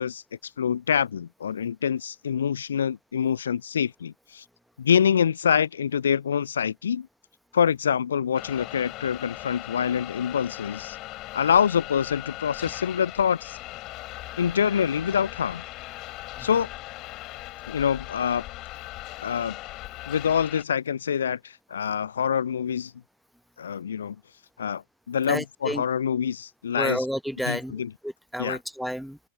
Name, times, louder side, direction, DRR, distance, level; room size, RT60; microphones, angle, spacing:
voice 1, 0.0-4.4 4.8-7.1 7.5-11.0 11.3-13.6 14.4-15.6 16.4-16.7 17.7-18.4 19.2-19.6 20.1-22.9 23.6-24.2 24.6-27.0 27.5-27.9 28.4-28.6, left 8 dB, 65° left, 0.5 m, -25 dB
sound 1, 8.3-20.6, left 19 dB, 40° left, 4.7 m, -39 dB
voice 2, 25.3-25.8 26.7-29.2, equal, ahead, 1.0 m, -31 dB
open air
figure-of-eight pair, 90°, 0 cm